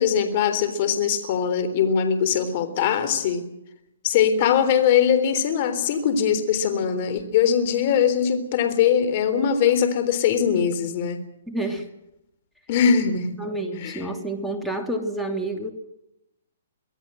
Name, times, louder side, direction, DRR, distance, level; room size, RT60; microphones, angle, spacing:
voice 1, 0.0-3.5 4.0-11.2 12.7-13.4 13.8-14.0, left 8 dB, 45° left, 10 dB, 3.6 m, -21 dB
voice 2, 11.5-11.9 13.4-15.7, right 2 dB, ahead, 3 dB, 3.0 m, -29 dB
25.0 x 16.5 x 7.8 m, 0.85 s
hypercardioid pair, 140°, 0 cm